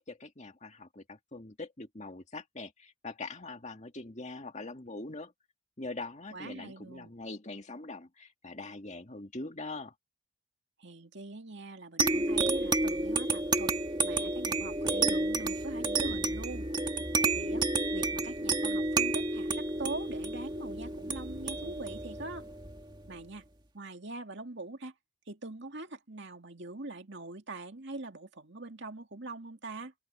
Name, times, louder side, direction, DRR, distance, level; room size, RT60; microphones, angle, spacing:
voice 1, 0.0-5.3 5.8-9.9, left 2 dB, 35° left, 2.0 m, -43 dB
voice 2, 6.3-7.1 10.8-13.8 14.0-16.7 17.2-17.7 17.9-22.5 23.1-23.5 23.7-24.9 25.3-29.9, right 2 dB, 55° right, 2.4 m, -43 dB
sound 1, 12.0-23.1, right 3 dB, 20° right, 1.9 m, -30 dB
open air
head